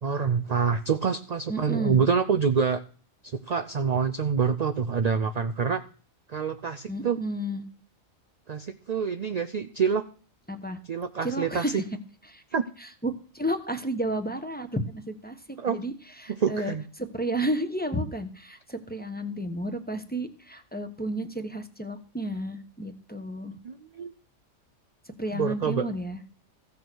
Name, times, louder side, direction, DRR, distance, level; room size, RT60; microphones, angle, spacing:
voice 1, 0.0-2.8 3.2-5.8 6.3-7.2 8.5-10.0 10.9-11.6 12.5-12.7 15.6-15.8 16.4-16.8 23.6-24.1 25.3-25.9, right 6 dB, 55° right, 8 dB, 0.4 m, -26 dB
voice 2, 1.5-2.0 6.9-7.6 10.5-10.8 11.2-11.8 12.3-12.4 12.8-23.5 25.2-26.2, right 1 dB, 5° left, 5 dB, 1.0 m, -32 dB
15.0 x 6.7 x 6.2 m, 0.42 s
omnidirectional pair, 1.4 m